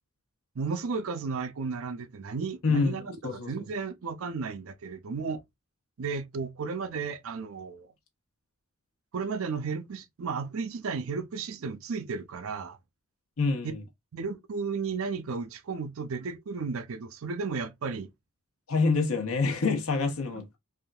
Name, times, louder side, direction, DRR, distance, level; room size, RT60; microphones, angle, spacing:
voice 1, 0.6-5.4 6.0-7.9 9.1-12.8 13.6-13.7 14.1-18.1 20.3-20.4, right 5 dB, 75° right, 0.5 m, -34 dB
voice 2, 2.6-3.5 13.4-13.8 18.7-20.6, left 4 dB, 80° left, 0.9 m, -27 dB
3.4 x 2.6 x 2.3 m
head